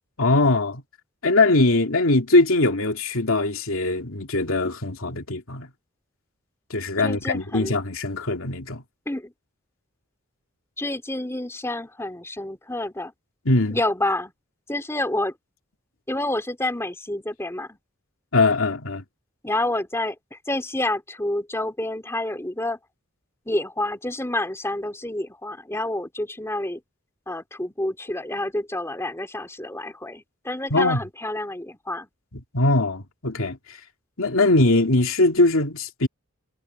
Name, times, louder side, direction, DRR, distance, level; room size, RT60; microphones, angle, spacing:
voice 1, 0.2-0.8 1.2-5.7 6.7-8.8 13.4-13.8 18.3-19.0 30.7-31.0 32.5-33.8 34.2-36.1, left 2 dB, 70° left, 2.6 m, -21 dB
voice 2, 7.0-7.8 9.1-9.3 10.8-13.1 13.7-14.3 14.7-15.3 16.1-17.8 19.4-22.8 23.5-26.8 27.3-32.1, left 1 dB, 10° left, 3.0 m, -28 dB
head